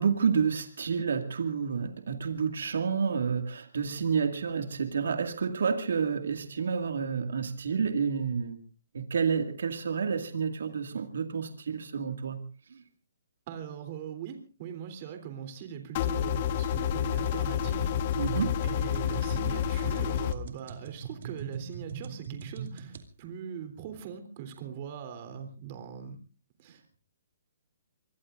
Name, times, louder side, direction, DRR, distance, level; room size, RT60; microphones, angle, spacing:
voice 1, 0.0-8.6 8.9-12.4 18.2-18.5, right 6 dB, 75° right, 6 dB, 2.1 m, -29 dB
voice 2, 13.5-18.1 18.6-26.2 26.6-27.0, right 8 dB, 40° right, 7 dB, 3.3 m, -41 dB
sound 1, 15.9-20.3, left 10 dB, 40° left, 1.2 m, -29 dB
sound 2, 16.7-23.0, right 6 dB, 60° right, 2.4 m, -41 dB
25.5 x 22.0 x 2.5 m, 0.36 s
hypercardioid pair, 150°, 0 cm